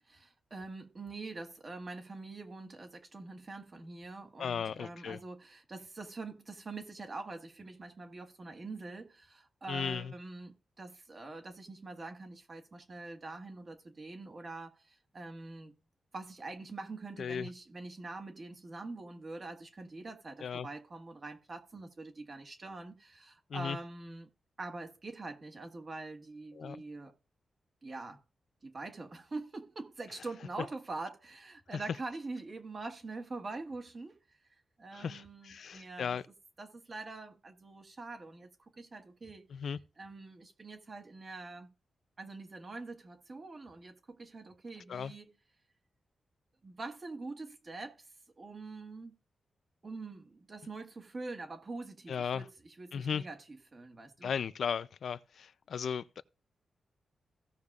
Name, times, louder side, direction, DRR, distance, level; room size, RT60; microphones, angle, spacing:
voice 1, 0.1-15.7 16.1-24.3 24.6-27.1 27.8-28.2 28.6-34.4 34.8-36.2 36.6-39.5 40.0-41.7 42.2-45.3 46.6-48.1 48.4-49.1 49.8-54.3, right 3 dB, 35° right, 1.5 m, -44 dB
voice 2, 4.4-5.2 9.7-10.1 17.2-17.5 20.4-20.7 23.5-23.8 26.5-26.8 31.7-31.8 34.9-36.2 39.5-39.8 44.9-45.1 52.1-52.4 52.9-53.2 54.2-56.2, left 7 dB, 65° left, 0.4 m, -36 dB
16.5 x 6.6 x 2.4 m
wide cardioid pair, 140°, 0 cm